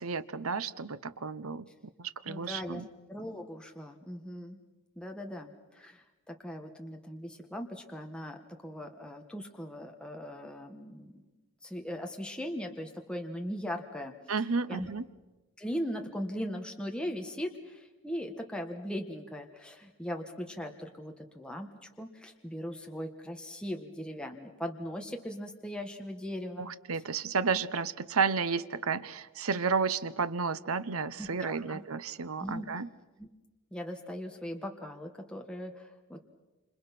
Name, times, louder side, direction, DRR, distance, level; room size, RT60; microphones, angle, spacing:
voice 1, 0.0-1.7 2.0-2.9 14.3-15.0 26.6-32.9, right 5 dB, 70° right, 15 dB, 0.9 m, -32 dB
voice 2, 2.3-2.8 3.1-4.6 5.0-11.3 11.6-14.1 14.7-14.9 15.6-21.7 22.0-26.7 31.2-31.8 32.4-32.7 33.2-33.3 33.7-36.2, equal, 5° left, 2 dB, 1.5 m, -39 dB
28.5 x 27.0 x 6.0 m, 1.1 s
head